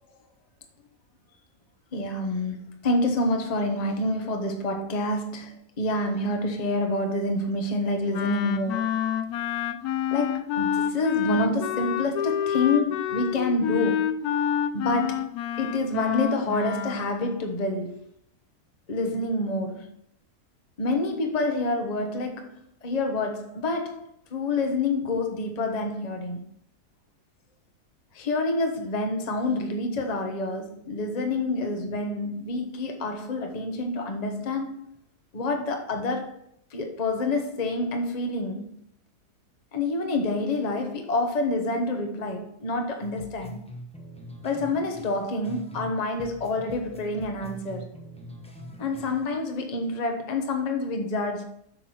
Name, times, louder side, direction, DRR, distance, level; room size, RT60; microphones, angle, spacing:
voice 1, 1.9-8.9 10.1-14.2 14.7-18.1 18.9-20.0 20.8-22.5 22.8-26.4 28.1-34.8 35.3-36.4 36.7-38.8 39.7-43.6 44.4-47.9 48.8-51.4, left 2 dB, 30° left, 0.9 m, -28 dB
Wind instrument woodwind instrument, 8.1-17.1, left 9 dB, 75° left, 1.1 m, -28 dB
sound 1, 43.0-45.9 46.2-49.4, left 1 dB, 5° left, 0.7 m, -43 dB
8.0 x 6.0 x 4.3 m
omnidirectional pair, 1.7 m